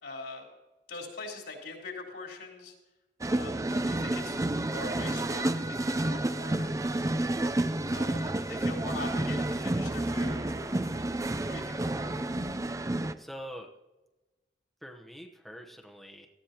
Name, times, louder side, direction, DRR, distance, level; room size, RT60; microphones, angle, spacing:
voice 1, 0.0-0.4 0.9-2.7 3.3-4.4 4.7-6.7 7.9-11.0 11.3-12.1, left 3 dB, 70° left, 0 dB, 3.8 m, -43 dB
sound 1, 3.2-13.1, right 1 dB, 20° right, 0.5 m, -30 dB
voice 2, 13.2-13.7 14.8-16.3, equal, ahead, 1 dB, 1.0 m, -45 dB
18.0 x 14.5 x 3.0 m, 1.1 s
head